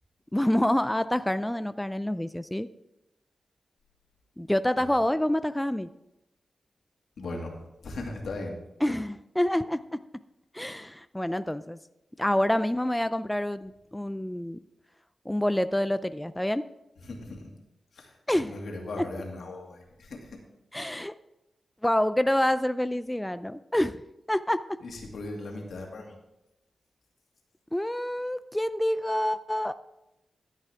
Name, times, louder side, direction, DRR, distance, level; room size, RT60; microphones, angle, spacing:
voice 1, 0.3-2.7 4.4-5.9 8.8-9.8 10.5-11.8 12.2-14.6 15.3-16.6 18.3-18.5 19.0-19.1 20.7-21.1 21.8-24.0 24.3-24.6 27.7-29.7, left 1 dB, 10° left, 12 dB, 0.3 m, -27 dB
voice 2, 7.2-7.6 7.8-8.6 17.0-17.5 17.9-20.4 24.8-26.2, left 2 dB, 80° left, 0 dB, 2.2 m, -38 dB
13.5 x 8.2 x 3.5 m, 0.91 s
cardioid pair, 80°, 0 cm